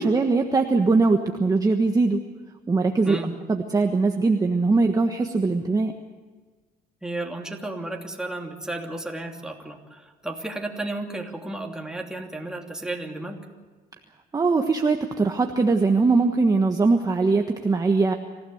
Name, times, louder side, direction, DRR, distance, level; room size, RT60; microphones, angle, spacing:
voice 1, 0.0-2.2 2.7-5.9 14.3-18.1, right 3 dB, 20° right, 4 dB, 1.4 m, -21 dB
voice 2, 7.0-13.4, right 2 dB, 5° right, 1 dB, 2.9 m, -33 dB
26.5 x 16.0 x 7.9 m, 1.4 s
cardioid pair, 110°, 17 cm